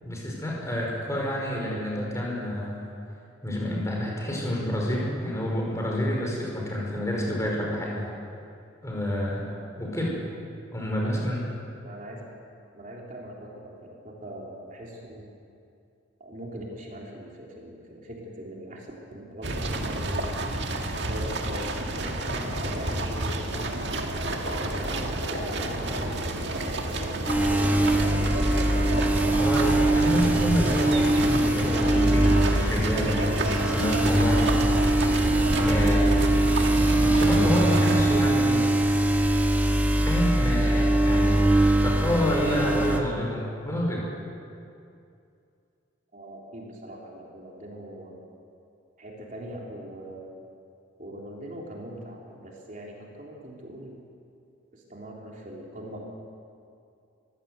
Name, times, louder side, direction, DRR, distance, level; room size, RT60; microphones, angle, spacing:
voice 1, 0.0-2.9 3.4-8.1 8.8-9.5 9.8-10.2 10.7-11.5 29.4-34.5 35.6-36.2 37.0-38.7 39.9-44.0, equal, 15° left, -2 dB, 5.5 m, -28 dB
voice 2, 11.8-12.3 12.7-15.3 16.2-20.3 20.8-21.7 22.6-28.6 46.1-48.2 49.0-50.3 51.0-54.0 54.7-56.0, equal, 40° right, -2 dB, 3.5 m, -41 dB
sound 1, 19.4-38.2, right 1 dB, 60° right, 2.0 m, -30 dB
sound 2, 21.1-30.3, left 1 dB, 65° left, 6.8 m, -39 dB
sound 3, 27.3-43.0, right 1 dB, 10° right, 1.7 m, -22 dB
23.0 x 16.0 x 8.2 m, 2.5 s
head